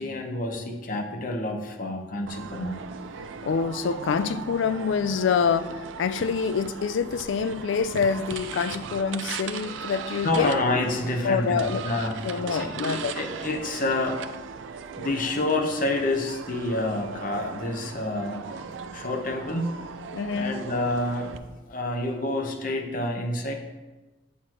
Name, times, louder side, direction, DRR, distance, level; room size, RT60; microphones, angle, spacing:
voice 1, 0.0-2.8 10.2-12.2 12.5-14.2 15.0-18.5 18.9-19.8 20.3-23.5, left 2 dB, 45° left, 0.9 m, -28 dB
sound 1, 2.3-21.4, right 6 dB, 85° right, 0.4 m, -38 dB
voice 2, 3.4-10.5 11.2-11.9 12.2-13.1 20.1-20.6, left 6 dB, 75° left, 0.4 m, -26 dB
8.3 x 6.1 x 3.0 m
head